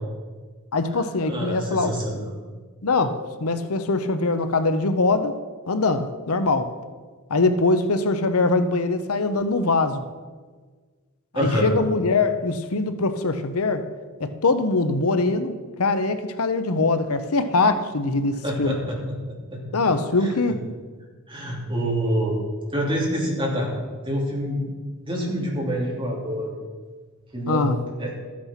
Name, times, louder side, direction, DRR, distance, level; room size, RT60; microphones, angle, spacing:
voice 1, 0.7-1.9 2.8-5.4 5.7-6.7 7.3-10.0 11.3-13.9 14.2-18.8 19.7-20.6 27.5-27.8, left 3 dB, 80° left, 10 dB, 0.8 m, -22 dB
voice 2, 1.2-2.2 11.3-11.8 18.4-19.2 19.5-19.6 20.2-20.3 21.3-22.3 22.7-23.7 24.0-24.7 25.0-26.5 27.3-27.6 28.0-28.1, equal, 25° right, -2 dB, 3.0 m, -26 dB
13.5 x 8.7 x 5.8 m, 1.5 s
head